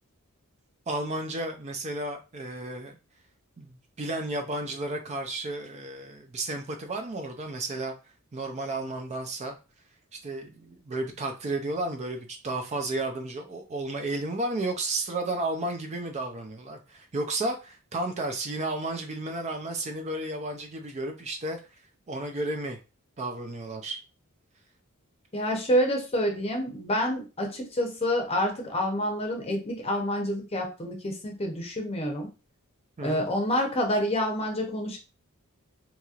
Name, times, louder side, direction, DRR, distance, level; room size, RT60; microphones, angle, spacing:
voice 1, 0.9-3.0 3.6-7.9 8.3-9.6 10.2-21.6 22.1-22.8 23.2-24.0 33.0-33.3, right 2 dB, 30° right, 4 dB, 0.4 m, -32 dB
voice 2, 25.3-32.3 33.0-35.0, equal, 25° left, 2 dB, 0.7 m, -28 dB
2.9 x 2.8 x 2.4 m, 0.31 s
head